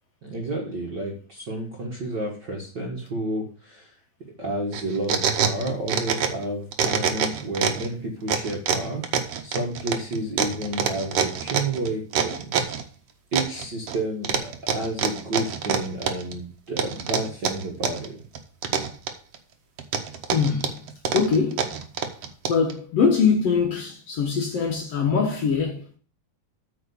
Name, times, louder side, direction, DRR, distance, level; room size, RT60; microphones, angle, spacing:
voice 1, 0.2-4.0 4.4-12.5 13.3-18.2, right 1 dB, 50° right, 1.4 m, -31 dB
sound 1, 4.7-6.4 6.7-7.9 8.3-12.8 13.3-14.0 14.2-16.3 16.8-18.1 18.3-19.4 19.8-22.7, right 7 dB, 65° right, 1.5 m, -25 dB
voice 2, 20.3-20.8 21.1-21.7 22.5-26.0, left 5 dB, 60° left, 1.9 m, -23 dB
8.9 x 4.7 x 6.8 m
omnidirectional pair, 4.0 m